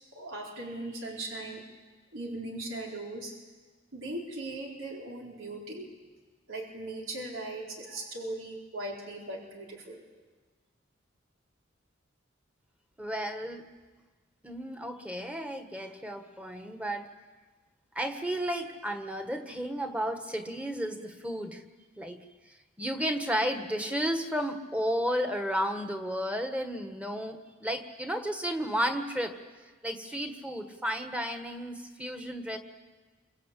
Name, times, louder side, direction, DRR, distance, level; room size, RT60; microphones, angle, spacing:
voice 1, 0.1-1.6 2.1-3.3 3.9-5.9 6.5-10.0, right 2 dB, 85° right, -1 dB, 4.3 m, -39 dB
voice 2, 13.0-13.6 14.4-17.1 17.9-21.6 22.0-29.4 29.6-32.6, equal, 5° right, 6 dB, 1.6 m, -33 dB
27.0 x 25.0 x 8.5 m, 1.4 s
head